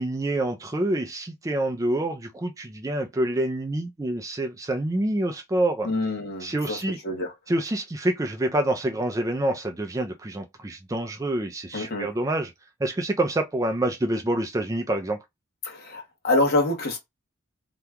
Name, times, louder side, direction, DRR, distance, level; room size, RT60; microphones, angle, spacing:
voice 1, 0.0-5.9 6.4-7.0 7.5-12.5 12.8-15.2, right 1 dB, 15° right, 0.4 m, -27 dB
voice 2, 5.8-7.3 11.7-12.1 15.6-17.0, left 2 dB, 50° left, 1.1 m, -26 dB
2.9 x 2.3 x 3.4 m
head